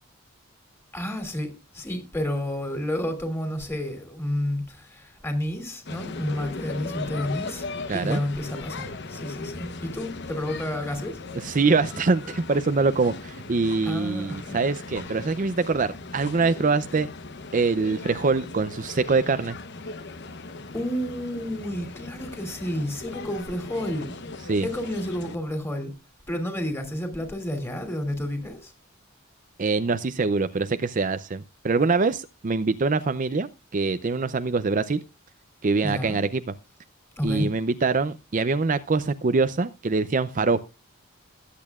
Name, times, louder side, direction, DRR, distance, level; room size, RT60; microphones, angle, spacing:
voice 1, 0.9-7.6 7.9-11.2 13.8-14.6 15.0-15.1 20.7-24.1 24.6-25.9 26.3-28.7 35.8-36.2 37.2-37.5, left 1 dB, 10° left, 2.8 m, -30 dB
sound 1, 5.9-25.4, left 3 dB, 55° left, 0.9 m, -38 dB
voice 2, 7.9-8.2 11.4-17.1 17.5-19.6 24.5-24.7 29.6-35.0 35.6-36.4 37.2-40.6, right 4 dB, 40° right, 0.5 m, -24 dB
21.0 x 8.5 x 2.4 m
head